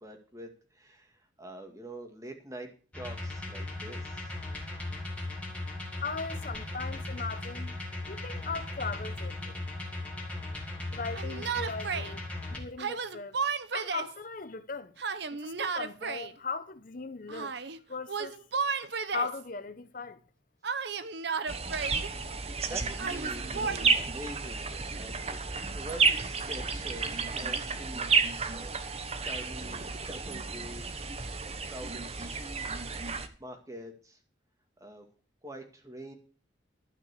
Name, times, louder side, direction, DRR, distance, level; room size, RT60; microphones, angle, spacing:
voice 1, 0.0-2.7 2.9-4.3 22.7-28.7 29.2-32.7 33.4-34.2 34.8-35.1 35.4-36.1, right 1 dB, 15° right, 2.0 m, -45 dB
sound 1, 2.9-12.6, left 2 dB, 5° left, 2.6 m, -38 dB
voice 2, 6.0-7.8 8.1-9.6 10.9-12.2 12.5-13.4 13.7-14.9 15.3-17.6 17.9-18.4 19.1-20.2, left 4 dB, 45° left, 0.9 m, -38 dB
Yell, 11.1-12.1 12.8-14.2 15.0-16.3 17.3-17.8 18.1-19.4 20.6-22.1 23.0-23.8, right 5 dB, 60° right, 0.8 m, -33 dB
sound 2, 21.5-33.3, right 4 dB, 35° right, 1.1 m, -31 dB
12.5 x 5.9 x 8.3 m
head